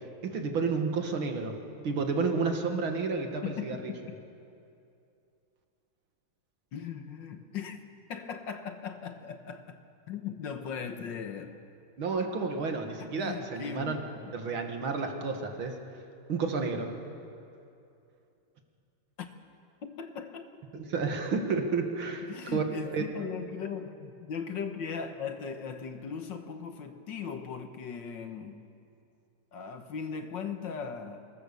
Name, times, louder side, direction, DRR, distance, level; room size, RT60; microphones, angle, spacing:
voice 1, 0.2-1.6 1.8-3.9 12.0-14.0 14.3-15.8 16.3-17.0 20.7-22.6 22.9-23.0, right 4 dB, 70° right, 2.7 m, -31 dB
voice 2, 3.4-4.2 6.7-9.8 10.1-11.5 13.0-14.4 19.8-21.1 22.2-28.7 29.5-31.3, left 6 dB, 65° left, 1.8 m, -39 dB
24.0 x 21.5 x 6.9 m
omnidirectional pair, 2.3 m